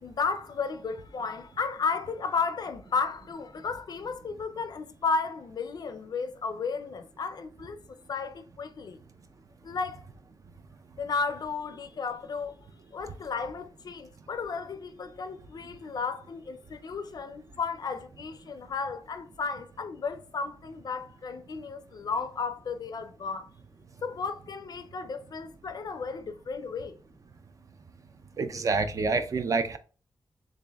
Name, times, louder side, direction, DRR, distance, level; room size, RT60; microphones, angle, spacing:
voice 1, 0.0-9.0 9.6-10.0 11.0-12.6 12.9-23.5 24.0-27.0, left 5 dB, 60° left, 0.4 m, -33 dB
voice 2, 28.4-29.8, right 4 dB, 45° right, 0.4 m, -27 dB
6.8 x 2.5 x 2.3 m
wide cardioid pair, 160°, 8 cm